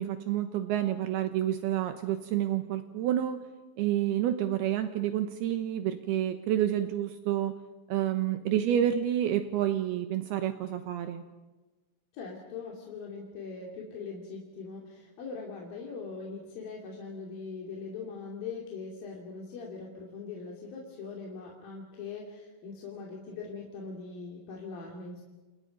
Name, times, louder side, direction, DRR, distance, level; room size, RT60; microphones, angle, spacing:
voice 1, 0.0-3.4 3.8-7.5 7.9-11.2, right 11 dB, 80° right, 8 dB, 2.3 m, -29 dB
voice 2, 12.1-25.2, left 4 dB, 50° left, -1 dB, 4.1 m, -41 dB
30.0 x 29.0 x 5.3 m, 1.2 s
omnidirectional pair, 5.9 m